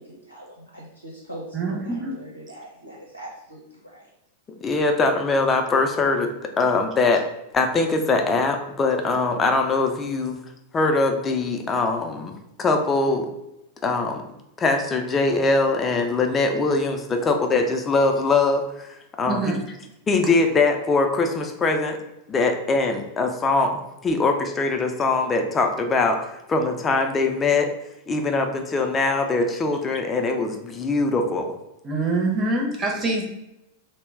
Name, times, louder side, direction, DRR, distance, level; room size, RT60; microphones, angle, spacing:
voice 1, 0.0-4.1, right 1 dB, 85° left, -3 dB, 0.6 m, -41 dB
voice 2, 1.5-2.1 19.3-19.6 31.8-33.3, right 2 dB, 25° right, 0 dB, 0.6 m, -25 dB
voice 3, 4.6-6.3 6.6-7.2 7.5-10.4 10.7-12.3 12.6-13.3 13.8-14.2 14.6-18.9 19.2-19.6 20.1-22.0 22.3-27.7 28.1-31.6, left 3 dB, 20° left, 4 dB, 0.4 m, -22 dB
2.1 x 2.0 x 3.4 m, 0.85 s
figure-of-eight pair, 90°, 0 cm